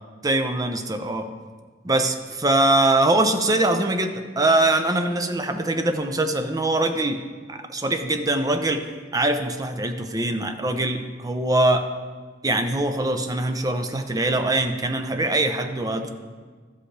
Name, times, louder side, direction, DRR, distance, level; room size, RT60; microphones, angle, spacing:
voice 1, 0.2-1.3 1.8-7.2 7.5-8.8 9.1-11.9 12.4-16.1, right 2 dB, 20° right, 7 dB, 0.6 m, -22 dB
13.0 x 7.8 x 3.3 m, 1.5 s
head